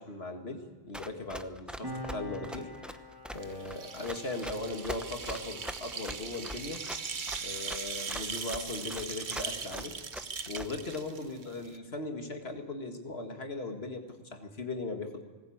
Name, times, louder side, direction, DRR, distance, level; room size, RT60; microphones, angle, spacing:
voice 1, 0.0-2.7 3.3-6.8 7.4-9.9 10.5-15.2, left 2 dB, 75° left, 4 dB, 2.2 m, -38 dB
Run, 0.9-11.0, equal, ahead, 0.7 m, -42 dB
Piano, 1.8-8.9 9.1-9.4, left 1 dB, 20° right, 2.7 m, -47 dB
Rainstick Slow, 3.3-11.8, right 5 dB, 50° right, 1.1 m, -40 dB
20.0 x 19.0 x 8.7 m, 1.3 s
omnidirectional pair, 1.1 m